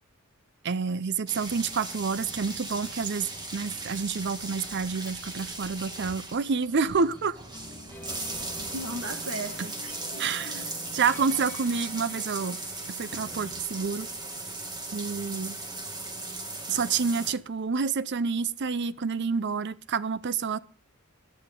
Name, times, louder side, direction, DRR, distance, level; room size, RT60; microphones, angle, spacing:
voice 1, 0.6-3.3 3.5-7.4 10.2-12.6 13.0-14.1 14.9-15.6 16.7-20.6, right 5 dB, 55° right, 0.6 m, -28 dB
sound 1, 1.3-17.3, right 2 dB, 20° right, 2.3 m, -38 dB
sound 2, 6.9-13.6, left 1 dB, 10° left, 2.0 m, -47 dB
voice 2, 8.6-10.7, right 2 dB, 80° right, 2.1 m, -38 dB
16.5 x 11.0 x 3.7 m
head